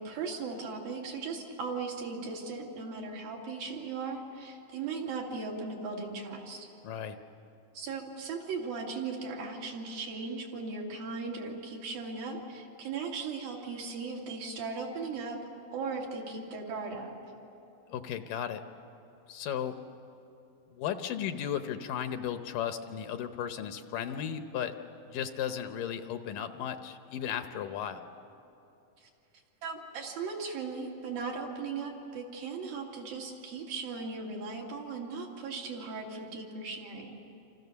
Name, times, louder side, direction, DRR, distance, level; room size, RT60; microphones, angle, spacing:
voice 1, 0.0-6.7 7.7-15.4 15.7-17.2 29.0-29.1 29.6-37.2, right 4 dB, 75° right, -1 dB, 4.3 m, -38 dB
voice 2, 6.8-7.2 17.9-18.6 19.3-19.7 20.7-24.7 25.1-28.1, left 9 dB, 75° left, 8 dB, 2.2 m, -35 dB
28.0 x 27.0 x 6.9 m, 2.8 s
omnidirectional pair, 4.2 m